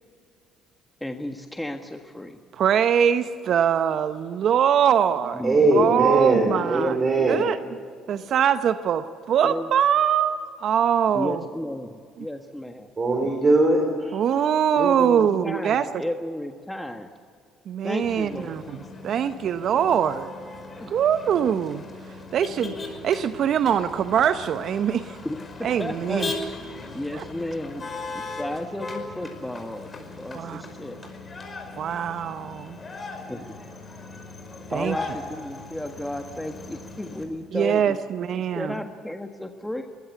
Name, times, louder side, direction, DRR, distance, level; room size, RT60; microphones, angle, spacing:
voice 1, 1.0-2.4 5.4-6.1 6.7-7.5 9.4-9.7 11.1-12.9 14.7-17.1 17.8-18.6 20.8-21.0 25.2-25.4 25.8-26.3 26.9-29.9 30.2-31.0 33.3-33.5 34.7-38.0 38.5-39.8, left 1 dB, 5° left, 5 dB, 1.5 m, -33 dB
voice 2, 2.5-5.4 5.8-7.0 7.3-7.6 8.1-11.4 12.2-12.3 14.1-16.0 17.7-20.3 20.9-25.2 25.6-26.3 27.1-27.2 30.3-30.6 31.8-32.8 34.7-35.0 37.5-38.8, right 8 dB, 60° right, 11 dB, 0.8 m, -23 dB
voice 3, 5.4-7.4 13.0-14.2, right 2 dB, 35° right, 2 dB, 4.1 m, -21 dB
Motor vehicle (road), 18.0-37.2, left 3 dB, 35° left, 5.4 m, -38 dB
21.5 x 19.0 x 8.3 m, 2.2 s
hypercardioid pair, 65°, 0 cm